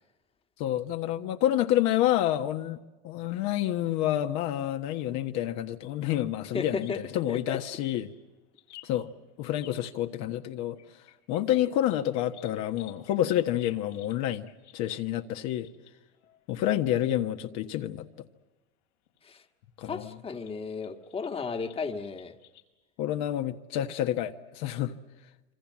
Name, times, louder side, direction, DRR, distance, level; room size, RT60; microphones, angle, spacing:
voice 1, 0.6-2.8 3.0-8.1 8.8-9.1 9.4-10.8 11.3-14.5 14.7-15.7 16.5-18.0 19.8-20.1 23.0-24.9, left 12 dB, 55° left, 1.4 m, -28 dB
sound 1, 5.8-9.9 10.6-16.8 17.0-17.2 17.6-17.7 19.1-19.2 19.9-22.6, left 14 dB, 90° left, 5.6 m, -55 dB
voice 2, 6.5-7.0 7.3-7.6 19.2-19.4 19.8-22.3, left 5 dB, 15° left, 1.6 m, -34 dB
26.5 x 25.5 x 7.5 m
supercardioid pair, 135°, 33 cm